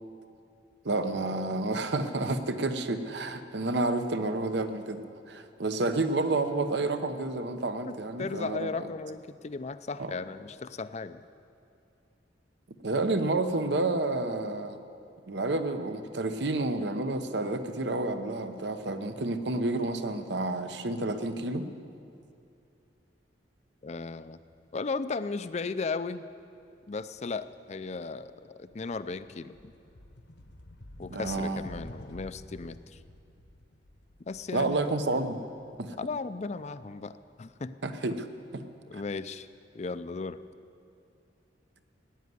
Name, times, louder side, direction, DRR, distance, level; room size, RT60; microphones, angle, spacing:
voice 1, 0.8-8.8 10.0-10.1 12.8-14.8 15.3-21.7 31.1-31.6 34.5-35.4 35.8-35.9 37.8-38.3 38.5-38.6, right 2 dB, 65° right, 9 dB, 0.9 m, -30 dB
voice 2, 7.9-11.2 23.8-24.4 24.7-26.2 26.9-29.6 31.0-33.0 34.2-34.8 35.2-35.3 36.0-37.8 38.9-39.5 39.7-40.4, left 4 dB, 35° left, 13 dB, 0.5 m, -36 dB
sound 1, 28.2-36.8, left 1 dB, 70° left, 1.1 m, -50 dB
16.0 x 9.4 x 9.6 m, 2.6 s
head